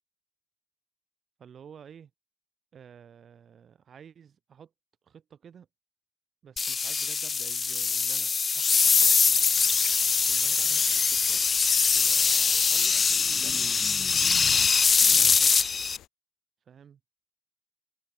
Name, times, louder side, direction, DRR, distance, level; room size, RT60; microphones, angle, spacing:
voice 1, 1.4-2.1 2.7-4.7 5.0-5.7 6.4-9.1 10.3-11.4 11.9-14.7 15.1-15.7 16.7-17.0, right 8 dB, 50° right, 4.5 m, -51 dB
sound 1, 6.6-16.0, left 5 dB, 35° left, 0.4 m, -23 dB
sound 2, 9.3-16.1, left 12 dB, 80° left, 1.9 m, -51 dB
cardioid pair, 130°, 0 cm